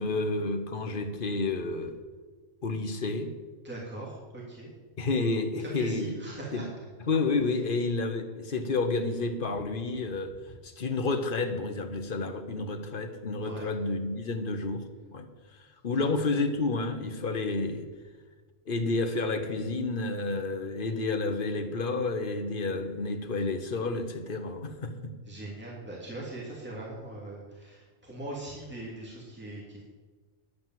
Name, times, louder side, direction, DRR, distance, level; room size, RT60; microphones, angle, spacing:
voice 1, 0.0-1.9 2.6-3.3 5.0-6.1 6.5-6.6 7.1-10.3 10.6-14.8 15.1-15.3 15.8-17.8 18.7-25.1, left 3 dB, 45° left, 7 dB, 1.3 m, -30 dB
voice 2, 3.6-4.7 5.6-6.6 13.4-13.7 16.0-16.1 25.3-29.8, right 2 dB, 10° right, -5 dB, 2.7 m, -41 dB
10.5 x 8.6 x 7.6 m, 1.4 s
omnidirectional pair, 1.3 m